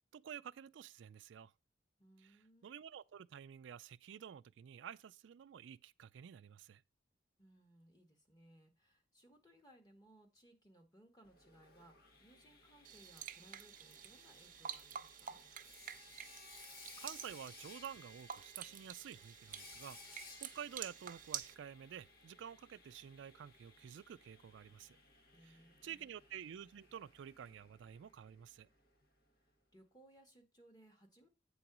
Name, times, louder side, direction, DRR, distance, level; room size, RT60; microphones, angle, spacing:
voice 1, 0.1-1.5 2.2-2.4 2.6-6.8 16.4-16.6 17.0-25.0 25.4-28.7, right 8 dB, 80° right, 0.3 m, -51 dB
voice 2, 2.0-2.7 7.4-15.4 25.3-26.1 29.4-31.3, right 1 dB, 20° left, 1.7 m, -65 dB
Sawing, 11.2-29.1, left 3 dB, 55° left, 1.4 m, -60 dB
sound 1, 12.8-21.5, right 9 dB, 45° right, 0.6 m, -49 dB
8.6 x 3.9 x 6.0 m
head